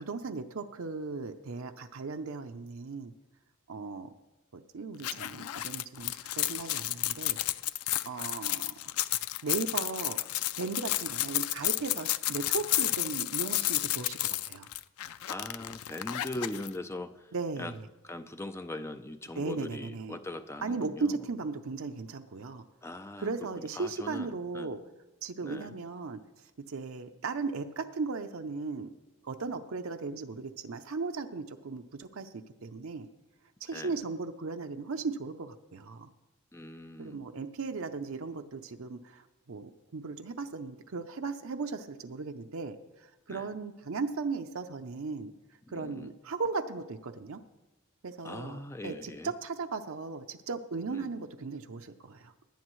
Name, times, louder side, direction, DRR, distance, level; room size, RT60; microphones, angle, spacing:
voice 1, 0.0-3.1 3.7-4.1 4.5-7.4 8.1-8.7 9.4-10.2 10.6-14.7 17.3-17.9 19.3-20.2 20.6-22.7 23.2-24.8 25.2-26.2 26.7-28.9 29.2-33.1 33.6-36.1 37.0-45.3 45.7-47.4 48.0-52.3, right 4 dB, 70° right, 6 dB, 0.6 m, -37 dB
sound 1, 5.0-16.7, left 15 dB, 85° left, 0.4 m, -32 dB
voice 2, 15.2-17.3 17.6-17.7 18.0-21.2 22.8-23.3 23.6-24.8 25.4-25.7 33.7-33.9 36.5-37.3 43.3-43.5 45.7-46.1 48.2-49.3 50.9-51.1, left 1 dB, 10° left, 9 dB, 0.5 m, -41 dB
17.5 x 11.0 x 3.1 m, 1.1 s
head